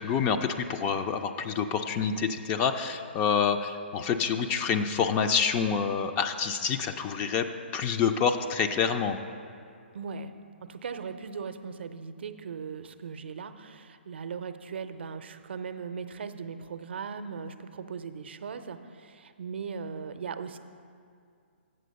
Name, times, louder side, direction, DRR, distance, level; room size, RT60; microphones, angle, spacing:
voice 1, 0.0-7.5 7.7-9.2, left 6 dB, 25° left, 7 dB, 0.4 m, -27 dB
voice 2, 9.9-10.3 10.7-20.6, right 5 dB, 65° right, 9 dB, 0.5 m, -38 dB
7.7 x 6.1 x 6.6 m, 2.3 s
figure-of-eight pair, 130°, 6 cm